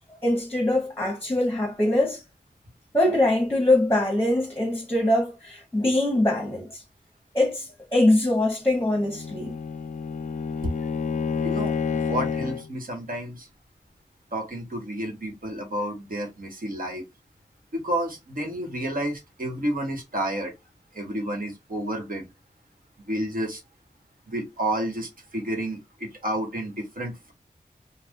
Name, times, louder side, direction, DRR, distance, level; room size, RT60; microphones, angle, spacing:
voice 1, 0.1-2.2 2.9-6.8 7.3-9.6, left 1 dB, 10° left, 1.0 m, -23 dB
Bowed string instrument, 8.8-12.7, left 5 dB, 55° left, 0.4 m, -29 dB
voice 2, 11.4-13.5 14.3-17.1 17.7-20.5 20.9-22.3 23.1-23.6 24.3-27.3, right 1 dB, 65° right, 1.2 m, -30 dB
2.5 x 2.1 x 3.5 m
wide cardioid pair, 55°, 16 cm